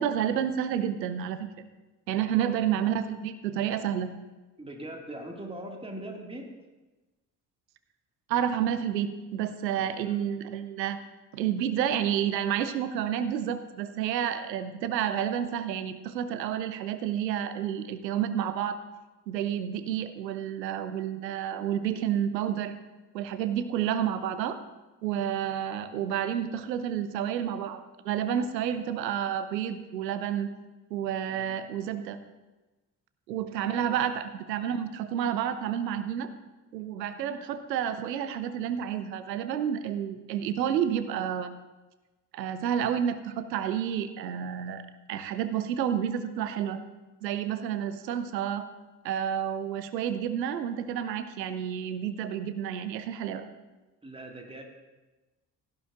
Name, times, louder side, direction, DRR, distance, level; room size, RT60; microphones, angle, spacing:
voice 1, 0.0-1.5 2.1-4.1 8.3-11.0 11.3-18.8 19.3-22.7 23.1-24.6 25.0-30.5 30.9-32.2 33.3-36.3 36.7-41.6 42.3-44.8 45.1-46.8 47.2-48.7 49.0-53.5, right 9 dB, 80° right, 11 dB, 0.7 m, -30 dB
voice 2, 2.2-2.6 4.6-6.5 9.8-10.2 31.3-31.6 33.6-34.1 54.0-54.6, right 1 dB, 10° right, 1 dB, 2.0 m, -42 dB
16.5 x 10.0 x 2.5 m, 1.1 s
figure-of-eight pair, 45°, 49 cm